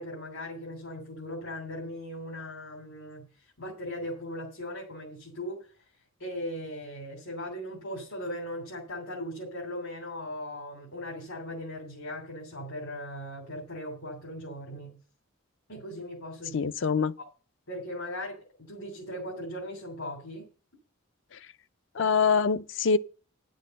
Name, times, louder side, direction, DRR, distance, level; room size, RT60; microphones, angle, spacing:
voice 1, 0.0-3.3 3.6-5.7 6.2-15.0 15.7-16.7 17.2-17.3 17.7-18.4 18.7-20.5, equal, 75° left, 3.2 m, -38 dB
voice 2, 16.5-17.1 22.0-23.0, left 5 dB, 60° left, 0.5 m, -24 dB
10.5 x 6.5 x 6.5 m
head